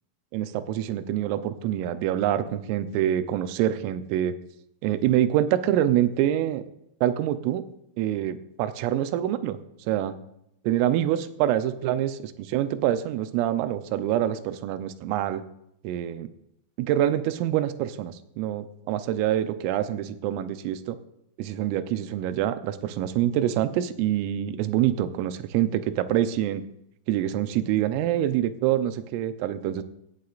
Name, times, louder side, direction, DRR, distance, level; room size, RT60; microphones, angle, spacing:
voice 1, 0.3-4.3 4.8-6.6 7.0-7.7 8.0-9.6 9.9-10.2 10.7-15.4 15.9-16.3 16.8-21.0 21.4-26.6 27.1-29.8, right 12 dB, 85° right, 10 dB, 3.4 m, -26 dB
17.0 x 15.5 x 2.5 m, 0.79 s
omnidirectional pair, 5.9 m